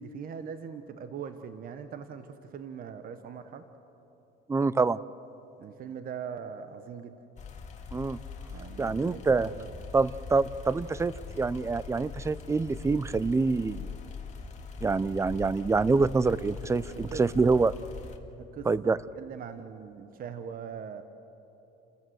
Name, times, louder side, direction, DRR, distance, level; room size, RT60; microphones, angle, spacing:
voice 1, 0.0-3.6 5.6-7.2 8.5-9.7 17.1-17.5 18.4-18.9 19.2-21.0, right 7 dB, 45° right, 9 dB, 1.0 m, -41 dB
voice 2, 4.5-5.0 7.9-8.2 8.8-9.5 9.9-13.9 14.8-17.7 18.7-19.0, right 4 dB, 15° right, 19 dB, 0.4 m, -26 dB
sound 1, 7.4-18.2, left 5 dB, 35° left, 2.0 m, -42 dB
30.0 x 14.0 x 7.8 m, 3.0 s
cardioid pair, 130°, 20 cm